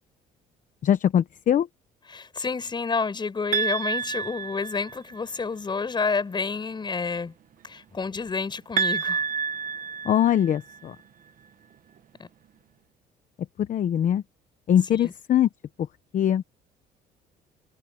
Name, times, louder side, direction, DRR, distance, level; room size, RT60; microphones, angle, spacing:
voice 1, 0.8-1.7 10.0-10.9 13.6-14.2 14.7-15.5 16.1-16.4, left 10 dB, 50° left, 1.0 m, -22 dB
voice 2, 2.1-7.3 7.6-9.2 12.2-12.3 14.9-15.1, left 4 dB, 25° left, 6.0 m, -29 dB
sound 1, 3.5-5.2 8.8-10.8, right 6 dB, 50° right, 1.3 m, -28 dB
cardioid pair, 110°, 17 cm